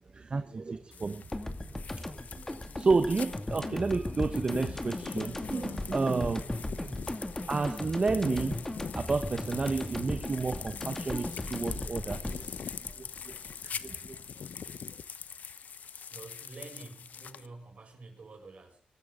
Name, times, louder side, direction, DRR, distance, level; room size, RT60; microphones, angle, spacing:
voice 1, 0.1-1.2 2.0-2.5 2.8-6.5 7.5-8.6 8.9-13.3 13.6-14.1, right 4 dB, 40° right, 1.2 m, -31 dB
sound 1, 0.9-17.5, left 7 dB, 75° left, 1.0 m, -43 dB
sound 2, 1.3-14.1, left 1 dB, 15° left, 2.5 m, -37 dB
voice 2, 6.6-7.0 15.8-18.8, right 3 dB, 55° right, 7.6 m, -49 dB
24.5 x 13.0 x 3.9 m
cardioid pair, 90°, 3 cm